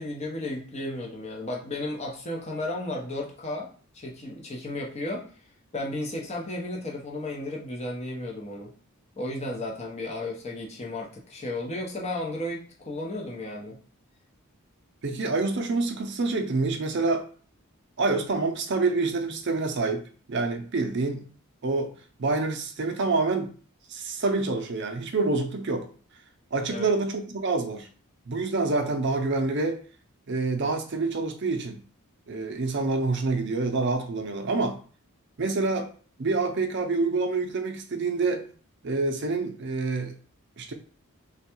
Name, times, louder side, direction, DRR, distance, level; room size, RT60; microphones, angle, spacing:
voice 1, 0.0-3.7 3.9-5.3 5.7-8.7 9.2-13.8 15.1-15.2 26.7-26.9, left 1 dB, 30° left, -1 dB, 0.7 m, -34 dB
voice 2, 15.0-17.2 18.0-20.0 20.3-21.3 21.6-21.9 22.2-23.5 23.9-25.9 26.5-27.9 28.3-29.8 30.3-31.8 32.3-34.8 35.4-35.9 36.2-38.5 38.8-40.1 40.6-40.7, right 3 dB, 50° right, 6 dB, 0.5 m, -27 dB
3.4 x 2.3 x 4.4 m, 0.41 s
head